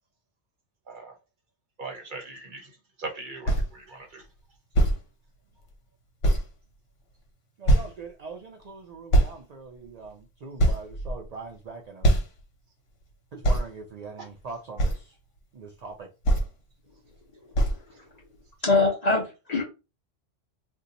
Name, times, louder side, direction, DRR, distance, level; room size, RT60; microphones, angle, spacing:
voice 1, 1.8-2.7 3.0-4.3 14.2-14.3, right 3 dB, 50° right, 0.8 m, -39 dB
sound 1, 3.5-3.7 4.8-5.0 5.7-5.8 6.2-6.5 7.7-8.0 9.1-9.3 10.0-10.1 10.6-11.4 12.0-12.4 13.4-13.7 14.8-15.0 16.3-16.5 17.5-17.8, right 1 dB, 75° left, 1.2 m, -21 dB
voice 2, 7.6-12.1 13.3-15.2 15.5-16.1, right 4 dB, 70° right, 0.3 m, -41 dB
voice 3, 18.6-19.7, left 3 dB, 40° left, 0.7 m, -23 dB
2.7 x 2.2 x 3.8 m
omnidirectional pair, 1.2 m